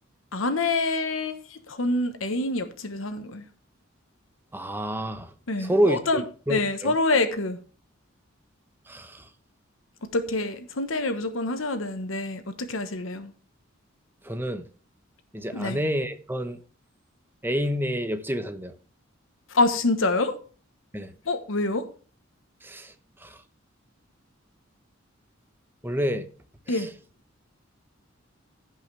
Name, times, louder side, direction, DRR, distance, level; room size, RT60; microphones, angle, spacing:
voice 1, 0.3-3.4 5.5-6.2 6.5-7.6 10.1-13.3 15.5-15.8 19.5-20.3 21.2-21.8 26.7-26.9, left 2 dB, 75° left, 1.1 m, -26 dB
voice 2, 4.5-5.3 5.6-6.9 8.9-9.3 14.2-14.6 15.3-16.6 17.4-18.7 20.9-21.1 22.6-22.9 23.2-23.4 25.8-26.3 26.7-26.9, equal, 10° right, 0.9 m, -28 dB
16.5 x 5.7 x 3.3 m
head